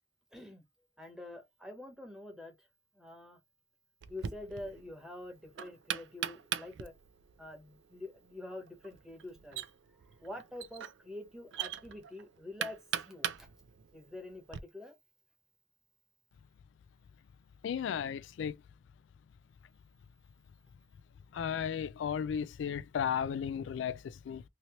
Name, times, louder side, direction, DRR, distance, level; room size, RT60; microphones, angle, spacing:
voice 1, 0.3-0.6 1.0-2.7 2.9-3.4 4.1-6.9 7.4-9.6 10.2-12.8 13.1-13.5 13.9-14.9, left 2 dB, 5° right, 1.0 m, -46 dB
Knock, 4.0-14.6, right 9 dB, 85° right, 0.4 m, -42 dB
voice 2, 17.6-18.6 21.3-24.4, left 8 dB, 85° left, 0.3 m, -34 dB
3.0 x 2.8 x 2.9 m
head